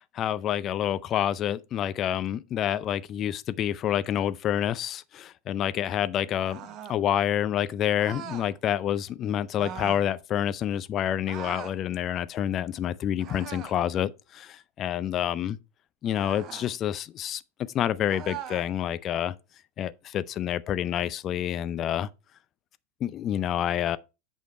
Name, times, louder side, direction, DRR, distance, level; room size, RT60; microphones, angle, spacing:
voice 1, 0.1-6.6 6.9-15.6 16.0-17.4 17.7-19.3 19.8-22.1 23.0-24.0, left 10 dB, 30° left, 0.5 m, -28 dB
sound 1, 6.4-7.0 8.0-8.5 9.6-10.1 11.3-11.8 13.2-13.8 16.1-16.7 18.1-18.7, right 9 dB, 35° right, 0.8 m, -40 dB
8.1 x 6.5 x 3.4 m
figure-of-eight pair, 90°, 0 cm